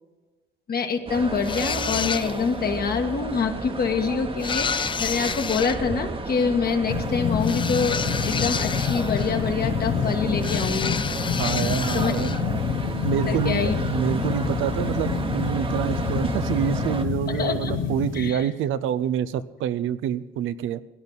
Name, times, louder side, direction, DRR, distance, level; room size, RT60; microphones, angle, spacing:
voice 1, 0.7-11.0 11.9-12.1 13.3-13.7 17.3-17.8 18.1-18.5, left 5 dB, 50° left, 5 dB, 1.6 m, -26 dB
sound 1, 1.1-17.0, right 3 dB, 25° right, 1.1 m, -32 dB
sound 2, 1.4-2.6 4.4-5.8 7.4-9.5 10.4-12.4, left 6 dB, 25° left, 0.4 m, -30 dB
sound 3, 6.9-18.3, left 7 dB, 75° left, 1.0 m, -28 dB
voice 2, 11.4-12.4 13.0-20.8, right 10 dB, 85° right, 14 dB, 0.6 m, -27 dB
18.0 x 10.5 x 4.0 m, 1.2 s
cardioid pair, 90°, 20 cm